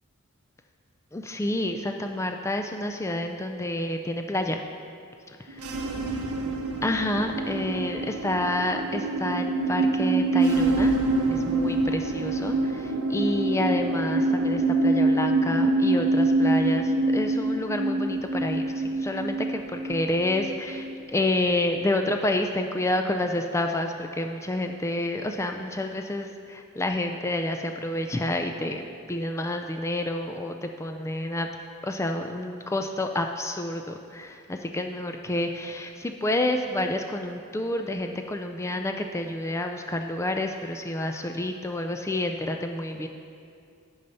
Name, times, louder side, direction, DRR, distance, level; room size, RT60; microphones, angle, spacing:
voice 1, 1.1-4.6 6.8-10.9 11.3-31.5 31.8-43.1, left 1 dB, 10° left, 5 dB, 0.3 m, -29 dB
sound 1, 5.5-21.0, right 2 dB, 75° right, 0.7 m, -25 dB
10.0 x 5.5 x 5.3 m, 2.4 s
head